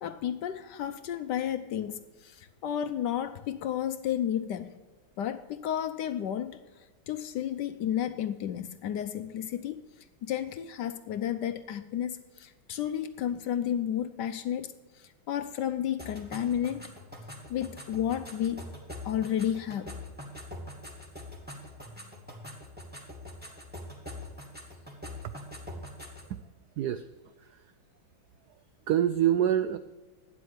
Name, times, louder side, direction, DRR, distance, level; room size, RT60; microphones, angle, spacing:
voice 1, 0.0-4.7 5.2-6.6 7.1-9.8 10.2-14.7 15.0-16.8 17.5-18.6 19.0-20.0, left 10 dB, 70° left, 10 dB, 1.1 m, -32 dB
sound 1, 16.0-26.3, left 1 dB, 5° right, 2.4 m, -44 dB
voice 2, 26.8-27.1 27.4-27.7 28.9-29.8, right 10 dB, 85° right, 12 dB, 0.8 m, -26 dB
12.0 x 9.7 x 5.1 m, 1.3 s
omnidirectional pair, 2.3 m